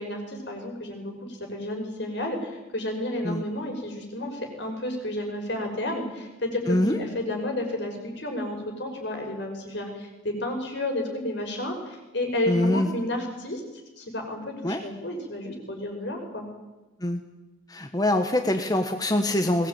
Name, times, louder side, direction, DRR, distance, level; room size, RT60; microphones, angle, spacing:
voice 1, 0.0-13.6 14.0-16.5, left 1 dB, 65° left, 3 dB, 6.1 m, -31 dB
voice 2, 6.7-7.0 12.5-12.9 14.6-14.8 17.0-17.2 17.7-19.7, left 1 dB, 20° left, 6 dB, 1.3 m, -24 dB
21.5 x 19.0 x 9.1 m, 1.1 s
head